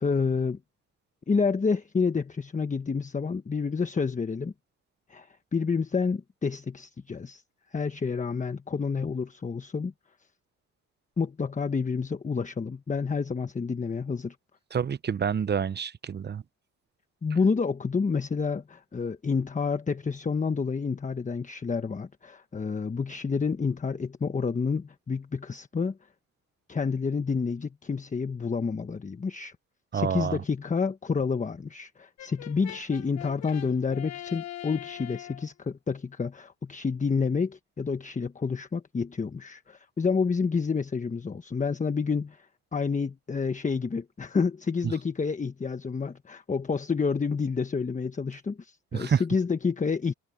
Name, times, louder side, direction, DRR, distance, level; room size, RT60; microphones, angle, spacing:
voice 1, 0.0-0.6 1.3-4.5 5.1-7.4 7.7-9.9 11.2-14.4 17.2-26.0 26.7-29.5 29.9-50.1, left 5 dB, 25° left, 1.1 m, -29 dB
voice 2, 14.7-16.4 29.9-30.4 48.9-49.2, right 7 dB, 35° right, 0.8 m, -28 dB
Brass instrument, 32.2-35.5, left 12 dB, 65° left, 1.2 m, -42 dB
cardioid pair, 90°, 30 cm